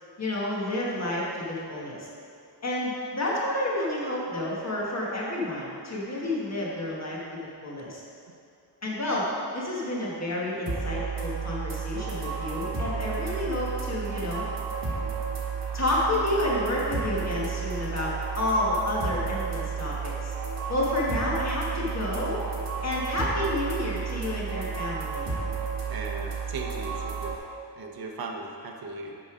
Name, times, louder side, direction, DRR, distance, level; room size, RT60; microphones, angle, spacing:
voice 1, 0.2-2.1 2.6-7.2 7.6-8.0 8.8-14.4 15.7-20.3 20.7-22.4 22.8-25.3, left 1 dB, 35° left, -5 dB, 1.4 m, -30 dB
sound 1, 10.7-27.4, right 5 dB, 75° right, 1.6 m, -32 dB
voice 2, 25.9-27.3 27.8-29.2, right 3 dB, 55° right, 2 dB, 0.8 m, -37 dB
7.8 x 5.4 x 4.9 m, 2.5 s
wide cardioid pair, 145°, 43 cm